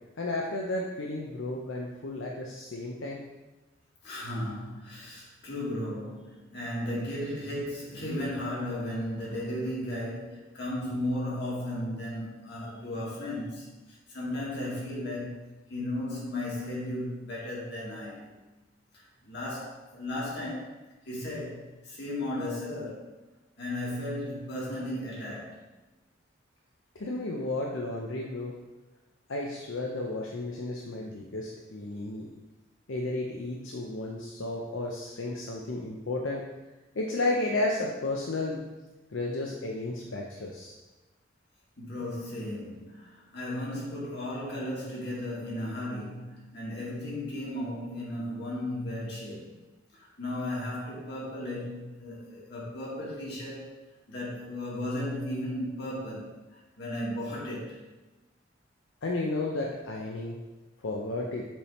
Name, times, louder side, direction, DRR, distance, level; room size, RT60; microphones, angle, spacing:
voice 1, 0.2-3.2 26.9-28.5 29.3-32.3 32.9-36.4 36.9-38.6 39.1-40.7 59.0-60.4 60.8-61.5, left 2 dB, 85° left, -1 dB, 0.7 m, -33 dB
voice 2, 4.0-15.4 15.7-18.3 18.9-20.7 21.0-23.1 23.6-25.6 41.8-49.5 49.9-53.8 54.1-57.8, left 1 dB, 60° left, -5 dB, 2.2 m, -35 dB
7.3 x 3.5 x 4.3 m, 1.1 s
head